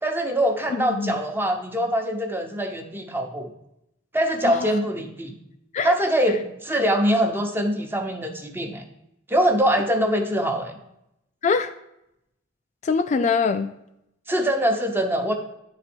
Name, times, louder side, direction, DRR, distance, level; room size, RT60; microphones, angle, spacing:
voice 1, 0.0-3.5 4.1-5.3 5.8-8.8 9.3-10.7 14.3-15.3, equal, 10° right, 4 dB, 0.8 m, -23 dB
voice 2, 0.7-1.1 4.4-4.7 5.7-5.9 11.4-11.7 12.8-13.7, left 5 dB, 40° left, 8 dB, 0.3 m, -23 dB
9.5 x 4.1 x 4.4 m, 0.82 s
head